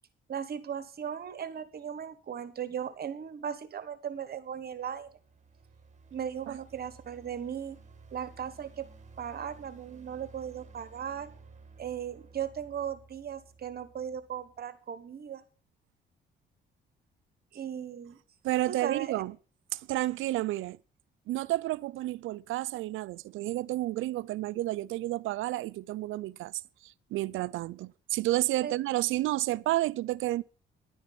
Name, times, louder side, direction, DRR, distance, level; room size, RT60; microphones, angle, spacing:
voice 1, 0.3-5.1 6.1-7.8 8.1-8.9 9.2-11.3 11.8-15.4 17.5-18.2 18.7-19.2 28.6-28.7, right 8 dB, 50° right, 1.2 m, -37 dB
sound 1, 4.4-14.6, right 4 dB, 35° right, 2.1 m, -55 dB
voice 2, 18.4-19.3 19.7-20.8 21.3-30.4, right 16 dB, 80° right, 0.5 m, -31 dB
10.5 x 9.3 x 5.9 m
cardioid pair, 90°, 20 cm